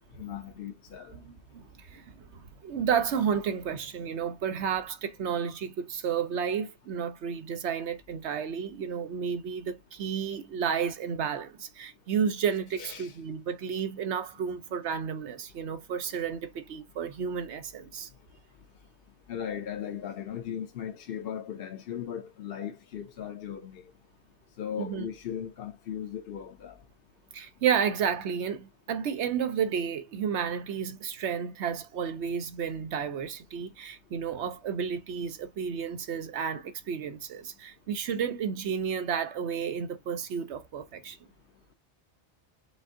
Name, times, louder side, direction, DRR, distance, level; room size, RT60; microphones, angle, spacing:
voice 1, 0.2-1.2 12.8-13.2 19.3-23.8 24.6-26.8, left 9 dB, 60° left, 0.8 m, -37 dB
voice 2, 1.1-18.1 24.8-25.1 27.3-41.2, right 7 dB, 80° right, 1.0 m, -32 dB
5.1 x 3.5 x 2.6 m
omnidirectional pair, 1.2 m